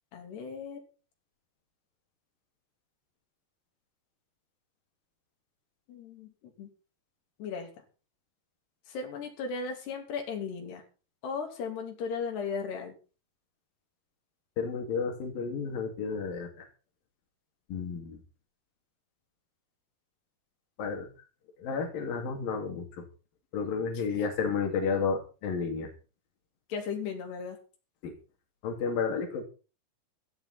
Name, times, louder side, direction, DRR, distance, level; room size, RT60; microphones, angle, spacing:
voice 1, 0.1-0.8 5.9-6.7 7.4-7.7 8.9-10.8 11.2-13.0 24.2-24.5 26.7-27.6, left 5 dB, 85° left, 3 dB, 5.2 m, -36 dB
voice 2, 14.6-16.7 17.7-18.2 20.8-21.1 21.6-23.0 23.5-25.9 28.0-28.2 28.6-29.4, left 5 dB, 60° left, 3 dB, 4.3 m, -32 dB
16.0 x 14.0 x 4.3 m, 0.35 s
omnidirectional pair, 4.6 m